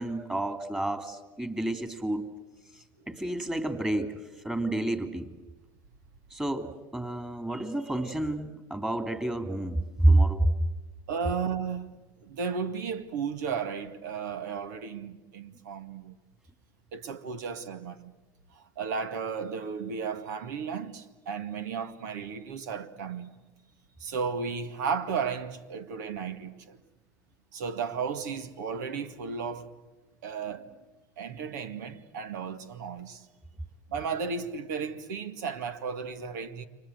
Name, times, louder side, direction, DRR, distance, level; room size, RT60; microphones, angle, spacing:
voice 1, 0.0-2.2 3.1-4.2 4.4-5.3 6.3-10.5, right 1 dB, 10° right, 2.8 m, -28 dB
voice 2, 11.1-16.2 16.9-18.1 18.5-23.4 24.0-26.8 27.5-29.7 30.2-30.7 31.2-33.2 33.9-36.7, right 6 dB, 85° right, 2.0 m, -34 dB
29.5 x 24.5 x 8.0 m
supercardioid pair, 100°, 9 cm